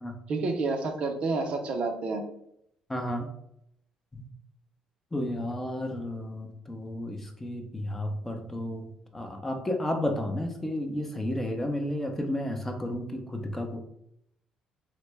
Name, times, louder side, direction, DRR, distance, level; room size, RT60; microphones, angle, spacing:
voice 1, 0.3-2.2, right 3 dB, 55° right, 5 dB, 0.5 m, -29 dB
voice 2, 2.9-3.3 4.1-4.3 5.1-13.8, left 1 dB, 15° left, 3 dB, 0.6 m, -32 dB
3.2 x 2.1 x 3.1 m, 0.74 s
supercardioid pair, 70°, 2 cm